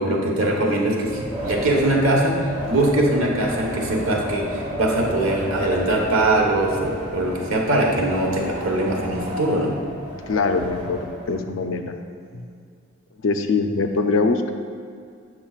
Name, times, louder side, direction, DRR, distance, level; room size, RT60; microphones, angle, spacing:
voice 1, 0.0-2.4 2.7-9.8, right 1 dB, 75° right, -1 dB, 1.1 m, -21 dB
Wind, 1.0-11.4, equal, 20° right, 1.1 m, -32 dB
voice 2, 8.9-9.3 10.3-11.0 11.3-11.9 12.3-12.5 13.2-14.5, left 4 dB, 65° left, 6 dB, 0.5 m, -23 dB
8.9 x 6.1 x 2.4 m, 2.3 s
head